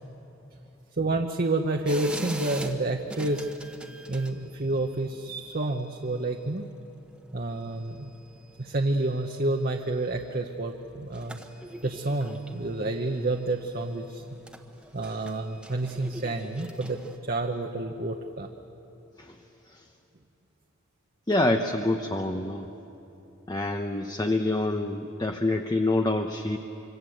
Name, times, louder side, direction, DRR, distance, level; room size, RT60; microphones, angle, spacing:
voice 1, 0.9-3.5 4.1-6.7 7.3-8.1 8.6-11.4 11.8-14.2 14.9-18.5, right 2 dB, 45° right, 3 dB, 1.0 m, -29 dB
sound 1, 1.9-17.2, right 1 dB, 5° right, 1.1 m, -44 dB
voice 2, 21.3-22.7 23.5-26.6, left 2 dB, 20° left, 5 dB, 0.8 m, -26 dB
26.0 x 24.5 x 7.8 m, 2.9 s
head